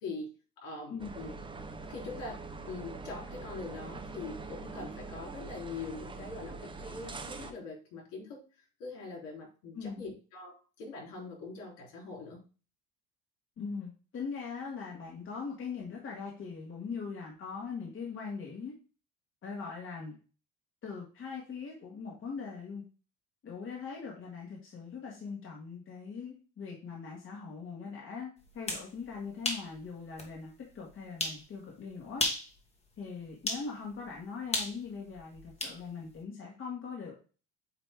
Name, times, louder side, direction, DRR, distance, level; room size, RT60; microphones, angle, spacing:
voice 1, 0.0-0.3 0.6-1.4 1.9-8.4 8.8-12.4, left 3 dB, 75° left, -2 dB, 3.6 m, -43 dB
sound 1, 1.0-7.5, right 3 dB, 15° right, 0.8 m, -43 dB
voice 2, 13.6-18.7 19.4-20.1 20.8-22.8 23.4-32.2 33.0-37.2, left 5 dB, 40° left, -2 dB, 1.9 m, -41 dB
sound 2, 28.5-28.9 29.4-29.7 30.2-30.3 31.2-31.4 32.1-32.5 33.5-33.7 34.5-35.8, left 2 dB, 20° left, 1.5 m, -33 dB
8.7 x 3.1 x 3.5 m, 0.36 s
cardioid pair, 110°, 32 cm